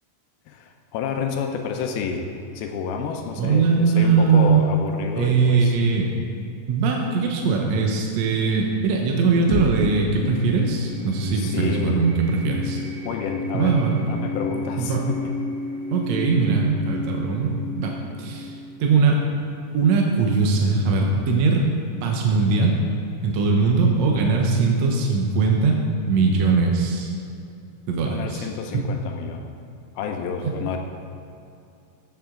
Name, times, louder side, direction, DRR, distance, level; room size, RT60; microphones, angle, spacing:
voice 1, 0.5-2.3 2.6-5.8 11.3-12.0 13.0-13.8 14.1-15.3 28.0-29.5 30.0-30.8, left 6 dB, 85° left, 4 dB, 2.5 m, -30 dB
voice 2, 3.4-4.6 5.2-6.1 6.7-12.8 13.5-14.0 14.8-15.0 15.9-19.2 19.7-21.6 22.0-22.8 23.2-25.8 26.1-27.1 27.9-28.5, right 4 dB, 70° right, 0 dB, 1.7 m, -20 dB
sound 1, 9.5-20.1, left 3 dB, 50° left, 1.4 m, -32 dB
15.0 x 8.0 x 3.7 m, 2.6 s
omnidirectional pair, 4.3 m